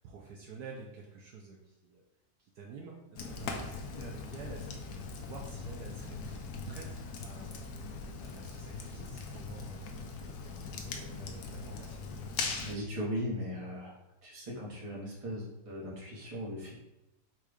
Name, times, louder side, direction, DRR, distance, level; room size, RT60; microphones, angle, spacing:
voice 1, 0.0-2.0 2.4-6.4 6.7-9.9 10.8-12.0, right 4 dB, 70° right, -1 dB, 1.0 m, -49 dB
Fire, 3.2-12.8, left 4 dB, 70° left, 1.1 m, -40 dB
voice 2, 12.6-13.9 14.2-16.7, equal, 25° right, -5 dB, 0.9 m, -38 dB
4.5 x 2.4 x 4.8 m, 0.97 s
omnidirectional pair, 2.0 m